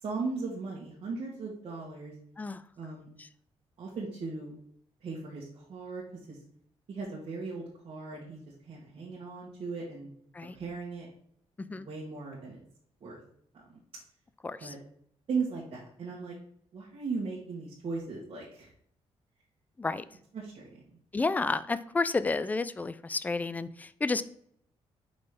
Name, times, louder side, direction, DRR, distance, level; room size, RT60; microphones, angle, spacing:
voice 1, 0.0-2.1 2.8-3.1 3.8-4.5 5.0-6.0 6.3-6.4 6.9-8.4 8.7-10.1 10.5-11.1 11.7-12.6 13.0-13.2 13.7-13.8 14.6-14.8 15.3-16.3 16.7-18.7 20.3-20.8, right 4 dB, 55° right, -7 dB, 1.7 m, -37 dB
voice 2, 14.4-14.7 19.8-20.0 21.1-24.2, left 3 dB, 15° left, 15 dB, 0.3 m, -31 dB
5.5 x 4.0 x 5.0 m, 0.66 s
cardioid pair, 140°, 11 cm